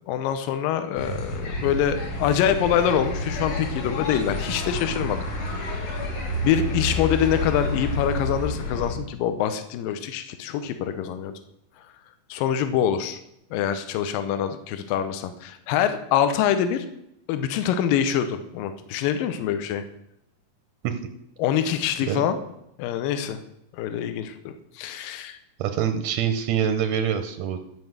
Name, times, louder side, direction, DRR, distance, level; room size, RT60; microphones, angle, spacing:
voice 1, 0.1-5.2 5.5-6.0 6.4-11.3 12.3-13.2 13.5-16.9 17.3-19.8 21.4-22.4 22.8-23.4 23.8-25.4, left 9 dB, 80° left, 9 dB, 2.4 m, -25 dB
sound 1, 0.9-8.9, left 1 dB, 60° left, 4.3 m, -29 dB
voice 2, 25.6-27.6, right 8 dB, 75° right, 7 dB, 1.6 m, -25 dB
13.0 x 5.4 x 7.8 m, 0.80 s
omnidirectional pair, 4.1 m